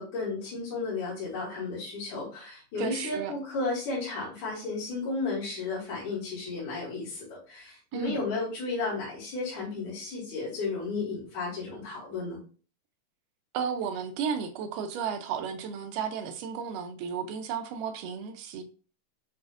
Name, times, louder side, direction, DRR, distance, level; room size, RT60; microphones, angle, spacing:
voice 1, 0.0-12.4, left 3 dB, 65° left, -10 dB, 2.9 m, -33 dB
voice 2, 2.8-3.3 7.9-8.2 13.5-18.6, right 7 dB, 85° right, 7 dB, 2.2 m, -33 dB
7.1 x 2.4 x 2.4 m, 0.38 s
omnidirectional pair, 3.7 m